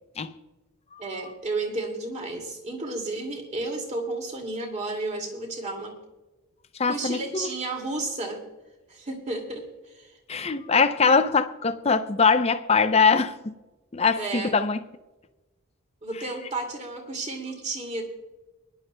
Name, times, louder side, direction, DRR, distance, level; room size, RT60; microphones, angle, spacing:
voice 1, 1.0-5.9 6.9-8.4 8.9-9.6 9.9-10.2 14.2-14.5 16.0-18.0, right 2 dB, 30° right, 2.2 m, -32 dB
voice 2, 6.8-7.5 10.3-13.5 13.9-14.8, left 5 dB, 30° left, 0.5 m, -22 dB
23.0 x 11.0 x 2.2 m
head